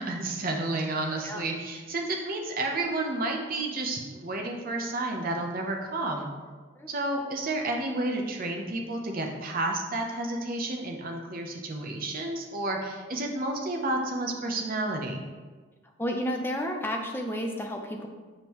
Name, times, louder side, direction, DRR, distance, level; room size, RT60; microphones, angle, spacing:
voice 1, 0.0-6.3 6.9-15.2, right 2 dB, 40° right, 1 dB, 0.8 m, -31 dB
voice 2, 16.0-18.1, equal, 10° left, 2 dB, 0.5 m, -31 dB
7.2 x 5.1 x 3.0 m, 1.4 s
head